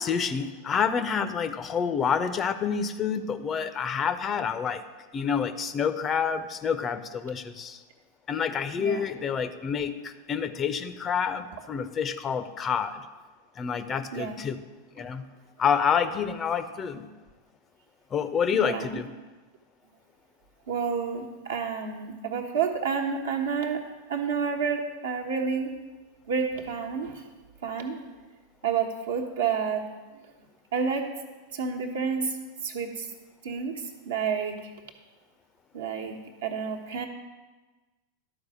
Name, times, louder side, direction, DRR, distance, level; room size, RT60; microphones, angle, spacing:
voice 1, 0.0-4.8 5.1-7.8 8.3-13.1 13.6-14.6 14.9-15.2 15.6-17.1 18.1-19.1, left 7 dB, 25° left, 11 dB, 0.5 m, -28 dB
voice 2, 18.5-19.0 20.7-23.8 24.1-25.7 26.3-27.2 27.6-28.0 28.6-29.8 30.1-30.3 30.7-31.1 31.5-32.4 32.6-33.1 33.4-34.7 35.7-36.2 36.4-37.1, right 6 dB, 60° right, 3 dB, 1.1 m, -29 dB
12.0 x 4.8 x 6.2 m, 1.2 s
figure-of-eight pair, 90°, 0 cm